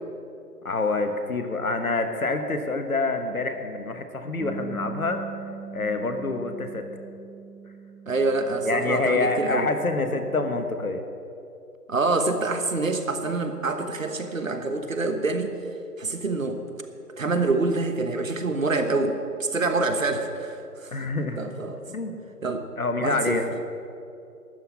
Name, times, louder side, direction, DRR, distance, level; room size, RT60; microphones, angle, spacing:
voice 1, 0.6-5.2 5.7-6.8 8.6-11.0 20.9-21.4 21.9-22.2 22.8-23.4, left 3 dB, 60° left, 7 dB, 1.4 m, -26 dB
Bass guitar, 4.4-10.7, right 6 dB, ahead, 0.4 m, -41 dB
voice 2, 8.1-9.7 11.9-15.5 16.0-16.6 17.2-20.6 20.8-20.9 21.4-21.8 22.4-22.6 23.0-23.4, right 3 dB, 55° right, 7 dB, 1.2 m, -26 dB
12.5 x 5.9 x 9.5 m, 2.6 s
figure-of-eight pair, 165°, 47 cm